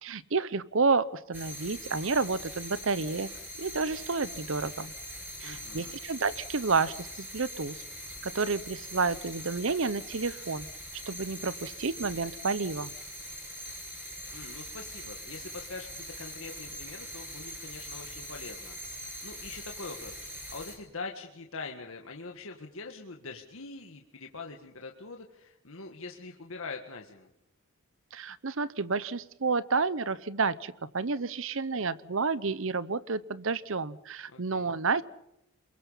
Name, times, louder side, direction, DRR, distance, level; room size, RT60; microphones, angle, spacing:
voice 1, 0.0-3.3 3.6-4.9 5.4-7.8 8.2-10.7 11.1-12.9 28.1-35.0, right 4 dB, 60° right, 18 dB, 0.8 m, -30 dB
sound 1, 1.3-20.8, equal, 10° right, 5.8 m, -42 dB
voice 2, 5.4-6.0 14.3-27.3 34.3-34.7, left 3 dB, 70° left, 2 dB, 1.7 m, -43 dB
28.0 x 22.5 x 5.6 m, 0.82 s
head